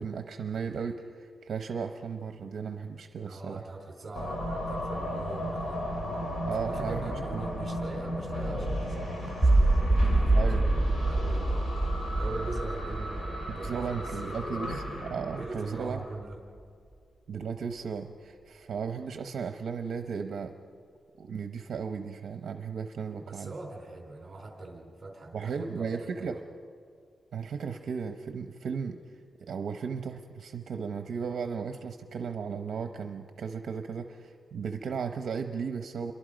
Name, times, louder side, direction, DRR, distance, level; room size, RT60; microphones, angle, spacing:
voice 1, 0.0-3.6 6.5-7.4 10.3-10.8 13.5-16.0 17.3-20.5 21.2-23.5 25.3-26.4 27.3-29.0 29.4-36.1, right 6 dB, 60° right, 6 dB, 0.8 m, -35 dB
voice 2, 3.2-5.9 6.6-14.5 15.3-16.4 23.2-26.4, right 2 dB, 25° right, 1 dB, 4.3 m, -42 dB
sound 1, 4.2-16.1, equal, 35° left, 3.0 m, -35 dB
sound 2, 9.4-15.5, right 2 dB, 5° left, 2.6 m, -26 dB
28.5 x 23.0 x 5.2 m, 2.3 s
wide cardioid pair, 180°, 0 cm